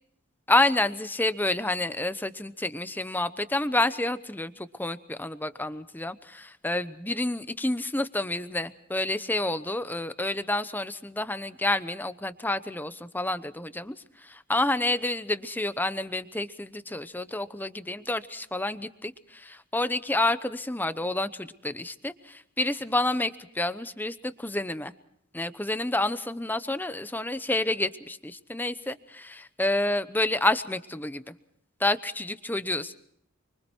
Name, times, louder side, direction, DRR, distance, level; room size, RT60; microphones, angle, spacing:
voice 1, 0.5-14.0 14.2-24.9 25.3-31.3 31.8-33.0, left 2 dB, 10° left, 12 dB, 0.9 m, -29 dB
29.5 x 23.5 x 4.5 m, 0.70 s
head